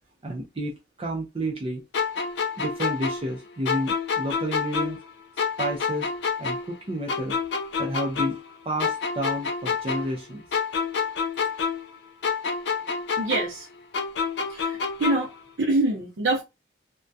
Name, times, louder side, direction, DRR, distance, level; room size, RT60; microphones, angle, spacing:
voice 1, 0.2-1.8 2.6-5.0 5.6-6.1 6.4-7.4 7.8-8.4 8.7-10.4, right 1 dB, 30° right, 0.4 m, -30 dB
sound 1, 1.9-5.1 5.4-8.5 8.8-12.0 12.2-15.4, left 5 dB, 65° left, 0.4 m, -28 dB
voice 2, 13.2-13.7 14.5-15.3 15.6-16.4, right 2 dB, 80° right, 0.6 m, -25 dB
2.2 x 2.1 x 2.5 m
head